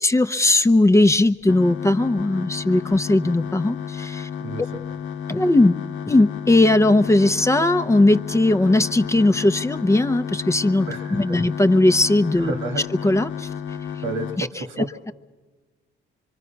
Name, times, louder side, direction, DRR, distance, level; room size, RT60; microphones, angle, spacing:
voice 1, 0.0-4.3 5.3-5.8 6.1-12.5 13.0-13.5 14.4-14.5, left 2 dB, 15° left, 8 dB, 0.7 m, -18 dB
sound 1, 1.4-14.4, left 8 dB, 85° left, 1.1 m, -32 dB
voice 2, 4.4-4.8 10.9-11.4 12.4-12.8 14.0-14.9, right 2 dB, 90° right, 6 dB, 1.9 m, -30 dB
25.0 x 24.0 x 5.9 m, 1.3 s
cardioid pair, 90°, 20 cm